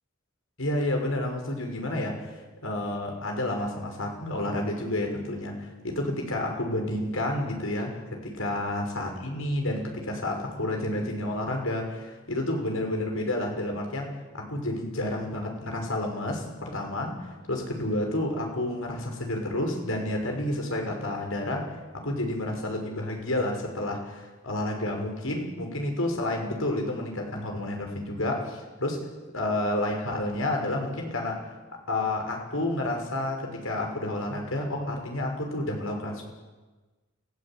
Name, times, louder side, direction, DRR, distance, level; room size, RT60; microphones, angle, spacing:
voice 1, 0.6-2.2 2.6-17.1 17.5-21.7 22.0-29.0 29.3-31.5 31.9-36.2, left 1 dB, 85° left, 2 dB, 6.6 m, -30 dB
29.0 x 17.5 x 9.3 m, 1.2 s
head